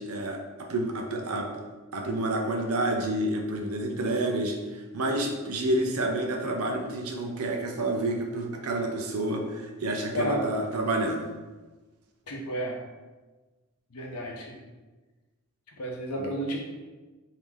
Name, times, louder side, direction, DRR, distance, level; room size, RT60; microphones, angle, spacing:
voice 1, 0.0-1.6 1.9-11.3, right 1 dB, 70° right, 3 dB, 0.6 m, -29 dB
voice 2, 10.1-10.5 12.3-12.8 13.9-14.6 15.8-16.6, equal, 80° left, 1 dB, 0.7 m, -31 dB
3.6 x 2.7 x 3.1 m, 1.2 s
head